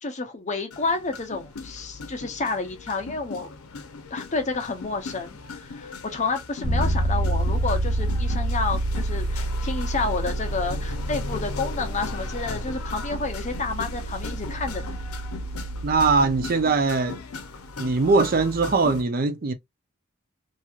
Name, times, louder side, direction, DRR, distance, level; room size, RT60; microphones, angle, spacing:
voice 1, 0.0-3.5 4.1-14.9, left 3 dB, 35° left, 0.7 m, -30 dB
sound 1, 0.7-19.0, left 4 dB, 85° left, 0.6 m, -38 dB
Bass guitar, 6.6-16.5, right 1 dB, 55° left, 1.2 m, -28 dB
voice 2, 15.8-17.2 17.8-19.5, right 4 dB, 45° right, 0.5 m, -21 dB
3.0 x 2.6 x 2.4 m
head